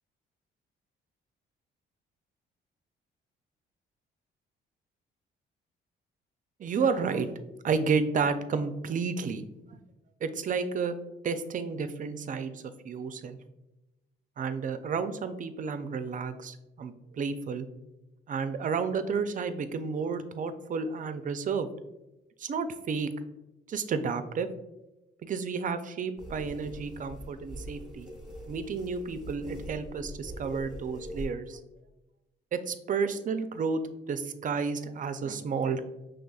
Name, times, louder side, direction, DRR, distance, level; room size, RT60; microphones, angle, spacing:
voice 1, 6.6-7.4 7.6-9.4 9.7-9.8 10.2-11.0 11.2-13.4 14.4-17.7 18.3-21.7 22.4-23.1 23.7-24.5 25.2-28.1 28.5-31.6 32.5-33.8 34.1-35.9, right 5 dB, 40° right, 10 dB, 0.4 m, -31 dB
sound 1, 26.2-31.3, equal, 5° right, 1.1 m, -43 dB
5.1 x 3.3 x 2.3 m, 0.97 s
cardioid pair, 90°, 20 cm